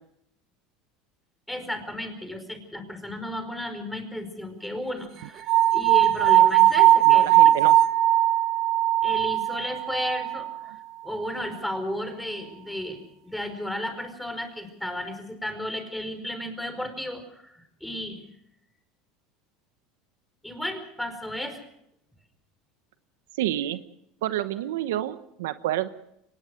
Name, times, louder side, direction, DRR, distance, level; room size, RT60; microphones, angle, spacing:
voice 1, 1.5-7.6 9.0-10.7 11.0-18.2 20.4-21.6, left 1 dB, 5° left, 7 dB, 5.0 m, -34 dB
sound 1, 5.5-10.6, right 14 dB, 50° right, 1.1 m, -19 dB
voice 2, 7.1-7.8 23.4-23.8 24.2-25.9, right 13 dB, 85° right, 12 dB, 1.0 m, -29 dB
24.0 x 20.0 x 6.4 m, 0.77 s
supercardioid pair, 110°, 0 cm